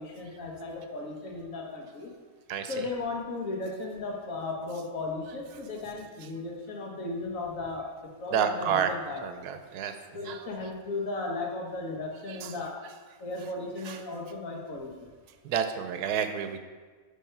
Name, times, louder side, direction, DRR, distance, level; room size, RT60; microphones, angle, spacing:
voice 1, 0.0-2.1 2.7-9.2 10.1-12.9 13.2-15.1, left 3 dB, 60° left, -1 dB, 1.5 m, -36 dB
voice 2, 8.3-8.9 9.2-9.9 10.2-10.4 13.9-14.0 15.4-16.6, right 8 dB, 85° right, 8 dB, 1.2 m, -29 dB
9.4 x 3.5 x 4.4 m, 1.5 s
omnidirectional pair, 1.6 m